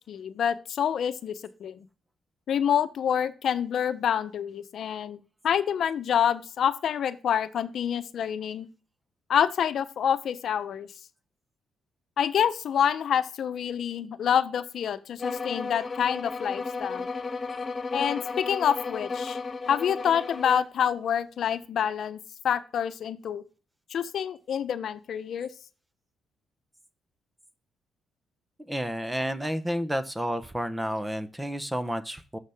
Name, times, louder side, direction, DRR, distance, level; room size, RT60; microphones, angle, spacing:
voice 1, 0.1-1.8 2.5-8.7 9.3-10.9 12.2-17.1 17.9-19.4 19.7-22.2 22.4-23.4 23.9-25.5, left 8 dB, 65° left, 11 dB, 0.8 m, -27 dB
sound 1, 15.2-20.7, left 4 dB, 30° left, 1.7 m, -34 dB
voice 2, 28.7-32.4, equal, 10° right, 12 dB, 0.8 m, -30 dB
6.5 x 6.5 x 3.5 m, 0.34 s
cardioid pair, 90°, 0 cm